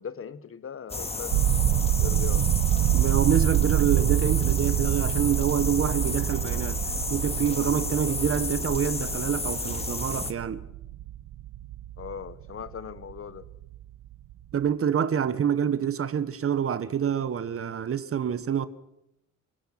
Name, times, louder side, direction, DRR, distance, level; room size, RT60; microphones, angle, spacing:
voice 1, 0.0-1.4 2.0-2.5 12.0-13.5, left 7 dB, 45° left, 1.4 m, -39 dB
sound 1, 0.9-10.3, left 3 dB, 20° left, 2.1 m, -32 dB
sound 2, 1.3-13.2 13.4-13.8 14.1-14.3, right 13 dB, 80° right, 0.9 m, -27 dB
voice 2, 2.9-6.8 7.1-10.6 14.5-18.7, right 8 dB, 50° right, 1.2 m, -27 dB
28.0 x 19.0 x 5.9 m
cardioid pair, 90°, 30 cm